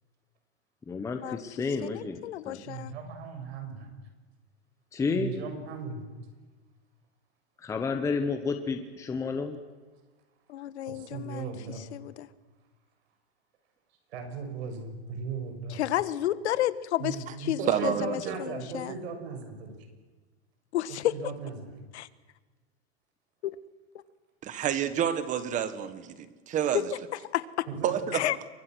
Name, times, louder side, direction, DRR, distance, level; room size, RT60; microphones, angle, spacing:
voice 1, 0.9-2.2 2.5-2.6 4.9-5.3 7.6-9.6, left 4 dB, 10° left, 6 dB, 1.1 m, -31 dB
voice 2, 1.8-2.9 10.5-11.5 11.9-12.3 15.7-17.1 17.4-19.0 20.7-21.1 21.9-22.1 23.4-23.6 27.3-27.7 28.1-28.4, left 13 dB, 90° left, 15 dB, 1.5 m, -31 dB
voice 3, 2.6-3.9 5.1-6.1 10.9-11.9 14.1-15.8 17.0-19.8 21.1-21.7 27.7-27.9, right 5 dB, 75° right, 5 dB, 6.7 m, -38 dB
voice 4, 17.7-18.4 24.4-26.8 27.8-28.2, right 9 dB, 25° right, 12 dB, 1.5 m, -29 dB
29.0 x 23.5 x 6.3 m, 1.3 s
supercardioid pair, 165°, 32 cm